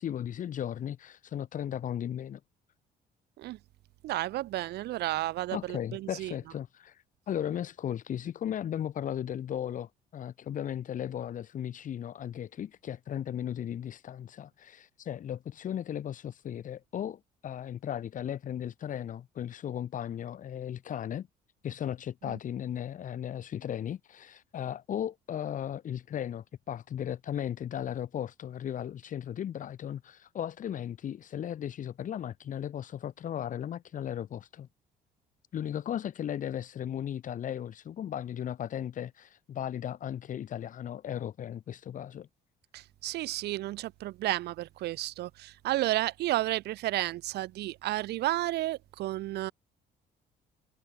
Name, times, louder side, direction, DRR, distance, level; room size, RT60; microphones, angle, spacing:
voice 1, 0.0-2.4 5.5-21.3 21.6-34.7 35.5-42.3, left 10 dB, 50° left, 1.7 m, -36 dB
voice 2, 4.0-6.3 22.2-22.4 42.7-49.5, right 16 dB, 75° right, 2.5 m, -32 dB
cardioid pair, 110°, 17 cm